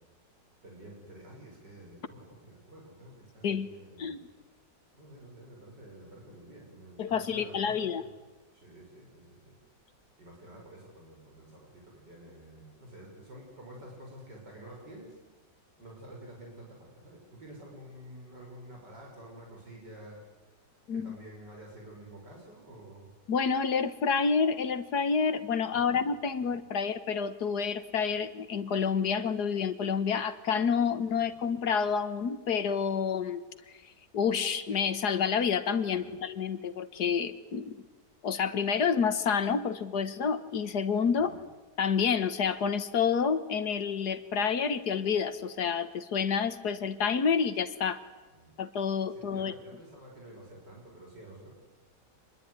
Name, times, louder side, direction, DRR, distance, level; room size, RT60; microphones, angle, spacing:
voice 1, 0.6-4.4 4.9-8.1 8.5-9.6 10.2-15.2 15.8-23.1 25.7-26.6 31.1-31.3 35.8-36.1 41.1-41.4 48.3-48.5 49.1-51.5, right 1 dB, 70° right, -1 dB, 6.7 m, -50 dB
voice 2, 7.0-8.0 20.9-21.1 23.3-33.4 34.1-37.8 38.2-41.3 41.8-48.0 48.6-49.5, left 6 dB, 65° left, 13 dB, 1.9 m, -29 dB
26.0 x 21.0 x 9.9 m, 1.2 s
omnidirectional pair, 1.9 m